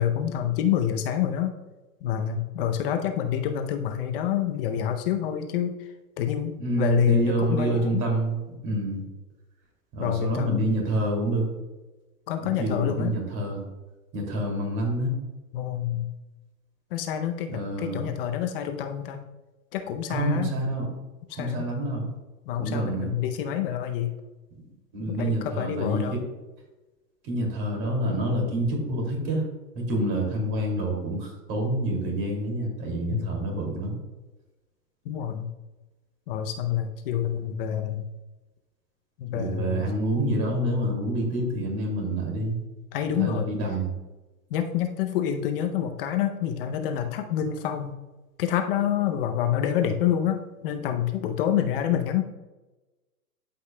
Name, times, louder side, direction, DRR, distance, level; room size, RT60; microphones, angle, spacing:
voice 1, 0.0-1.5 2.0-5.8 6.2-8.0 10.0-10.7 12.3-13.1 15.5-16.1 16.9-19.2 19.7-20.5 21.3-21.7 22.5-24.1 25.2-26.2 33.1-33.4 35.1-35.5 36.3-38.1 39.2-39.9 42.9-43.5 44.5-47.9 48.4-52.2, left 10 dB, 35° left, 6 dB, 0.6 m, -27 dB
voice 2, 6.6-9.0 9.9-11.5 12.4-13.6 14.1-15.1 17.5-18.1 20.1-20.9 21.3-22.1 22.6-23.1 24.9-26.2 27.2-29.4 29.7-33.9 39.3-42.6 43.2-43.9, right 1 dB, 40° right, 1 dB, 2.5 m, -27 dB
12.0 x 5.4 x 2.2 m, 1.1 s
hypercardioid pair, 130°, 49 cm